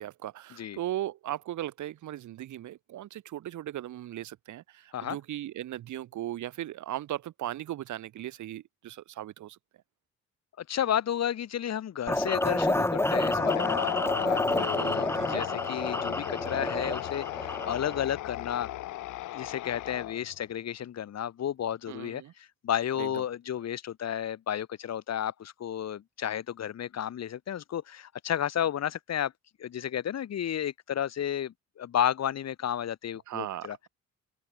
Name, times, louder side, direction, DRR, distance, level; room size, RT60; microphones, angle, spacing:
voice 1, 0.0-9.6 14.3-15.5 21.9-22.3 22.9-23.2 33.3-33.9, right 13 dB, 75° right, 2.2 m, -38 dB
voice 2, 10.6-18.7 19.3-29.3 29.6-33.8, left 10 dB, 60° left, 2.2 m, -32 dB
sound 1, 12.1-18.0, left 1 dB, 10° left, 2.7 m, -29 dB
sound 2, 13.2-20.4, left 15 dB, 80° left, 1.2 m, -36 dB
cardioid pair, 90°, 30 cm